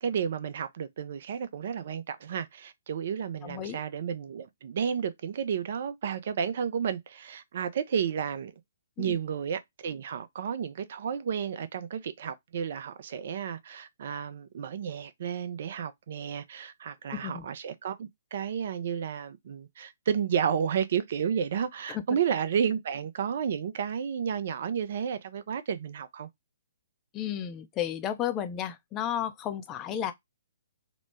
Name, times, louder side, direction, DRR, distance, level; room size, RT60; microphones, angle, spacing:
voice 1, 0.0-8.5 9.0-26.3, right 7 dB, 45° right, 0.4 m, -32 dB
voice 2, 3.4-3.8 9.0-9.2 17.2-17.5 21.9-22.0 27.1-30.1, left 10 dB, 20° left, 0.4 m, -33 dB
3.0 x 2.0 x 3.1 m
figure-of-eight pair, 125°, 0 cm